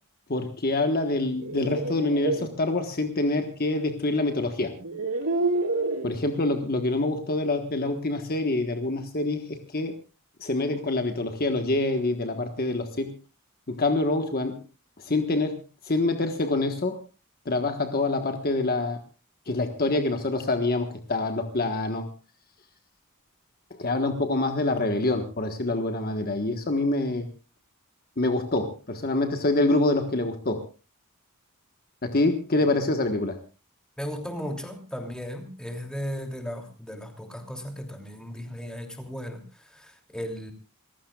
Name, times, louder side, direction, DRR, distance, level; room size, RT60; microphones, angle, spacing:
voice 1, 0.3-4.7 6.0-9.9 10.4-13.1 13.7-14.6 15.0-15.6 15.8-17.0 17.4-19.0 19.5-22.1 23.8-27.3 28.2-30.6 32.0-33.4, left 2 dB, 45° left, 6 dB, 1.4 m, -26 dB
sound 1, 1.3-2.5 3.9-4.0 4.7-6.1, right 2 dB, 85° right, 2.0 m, -28 dB
voice 2, 34.0-40.5, equal, 5° left, 3 dB, 3.0 m, -36 dB
28.5 x 15.5 x 2.4 m, 0.33 s
head